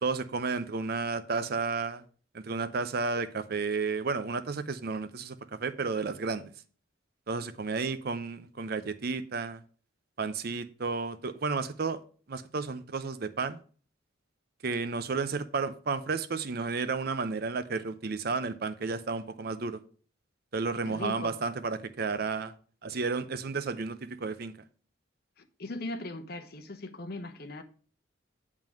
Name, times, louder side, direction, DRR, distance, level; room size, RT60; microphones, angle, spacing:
voice 1, 0.0-2.0 2.3-6.5 7.3-9.6 10.2-12.0 12.3-13.6 14.6-19.8 20.5-22.5 22.8-24.6, right 4 dB, 50° right, 0.6 m, -32 dB
voice 2, 20.8-21.3 25.4-27.6, left 2 dB, 50° left, 0.9 m, -39 dB
8.9 x 3.7 x 6.1 m
head